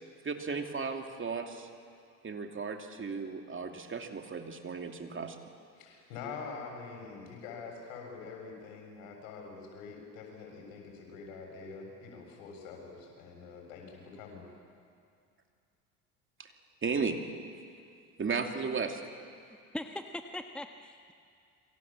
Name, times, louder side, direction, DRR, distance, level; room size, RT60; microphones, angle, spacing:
voice 1, 0.2-1.7 2.2-5.4 16.4-16.5 16.8-17.2 18.2-19.0, right 5 dB, 30° right, 4 dB, 2.8 m, -35 dB
voice 2, 5.8-14.4, left 5 dB, 75° left, 1 dB, 7.3 m, -45 dB
voice 3, 19.7-21.1, left 1 dB, ahead, 6 dB, 1.4 m, -40 dB
28.5 x 24.0 x 7.5 m, 2.4 s
hypercardioid pair, 60°, 40 cm